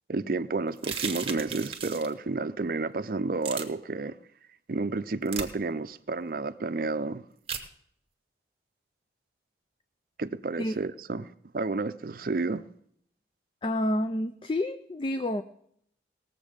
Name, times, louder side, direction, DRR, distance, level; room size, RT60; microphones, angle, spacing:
voice 1, 0.1-4.1 4.7-7.2 10.2-11.3 11.5-12.6, right 3 dB, 50° right, 0.5 m, -31 dB
sound 1, 0.8-2.1 3.4-3.6 5.3-5.5 7.5-7.7, right 7 dB, 30° right, 1.2 m, -35 dB
voice 2, 13.6-15.4, left 1 dB, 30° left, 0.4 m, -29 dB
19.0 x 7.3 x 5.0 m
head